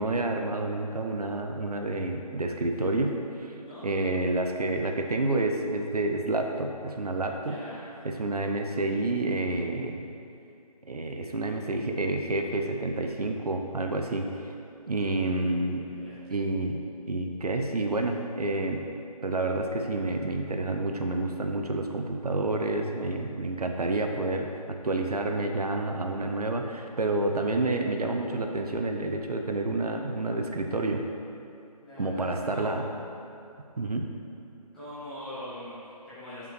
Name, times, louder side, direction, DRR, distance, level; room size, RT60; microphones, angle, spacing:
voice 1, 0.0-3.5 3.8-7.6 8.0-10.0 10.9-14.5 14.9-15.8 16.3-18.9 19.2-31.0 32.0-32.8 33.8-34.1, right 2 dB, 75° right, 4 dB, 0.6 m, -29 dB
voice 2, 7.3-7.9 14.8-15.5 15.9-16.3 31.8-33.1 34.7-36.5, left 1 dB, 5° left, -15 dB, 1.1 m, -43 dB
7.5 x 5.3 x 3.2 m, 2.6 s
figure-of-eight pair, 155°, 20 cm